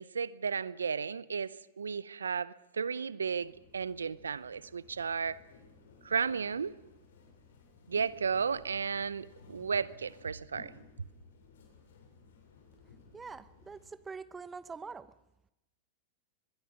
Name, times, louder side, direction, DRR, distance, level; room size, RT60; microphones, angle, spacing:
voice 1, 0.0-5.4 6.0-6.7 7.9-10.7, right 6 dB, 85° right, 19 dB, 0.7 m, -34 dB
sound 1, 3.4-13.9, left 4 dB, 70° left, 7.2 m, -57 dB
voice 2, 13.1-15.1, right 5 dB, 15° right, 15 dB, 0.9 m, -44 dB
23.0 x 21.5 x 5.9 m, 0.92 s
hypercardioid pair, 100°, 0 cm